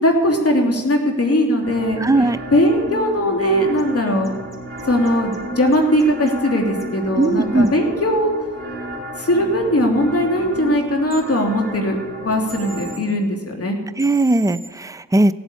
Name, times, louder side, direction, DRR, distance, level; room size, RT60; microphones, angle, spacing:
voice 1, 0.0-2.0 2.5-4.3 4.9-8.3 9.2-12.0 12.2-13.8, equal, 50° left, 2 dB, 3.1 m, -19 dB
sound 1, 1.6-13.0, right 1 dB, 35° right, 4.2 m, -33 dB
voice 2, 2.0-2.4 7.2-7.7 14.0-15.3, right 2 dB, 10° right, 11 dB, 0.7 m, -17 dB
sound 2, 3.8-3.9 4.2-5.4 5.7-6.3 6.8-6.9 7.2-7.3 7.6-7.7 11.1-11.2 12.5-13.0 14.0-14.7, right 4 dB, 10° left, 3.5 m, -39 dB
16.5 x 8.0 x 8.6 m, 1.3 s
supercardioid pair, 45°, 30 cm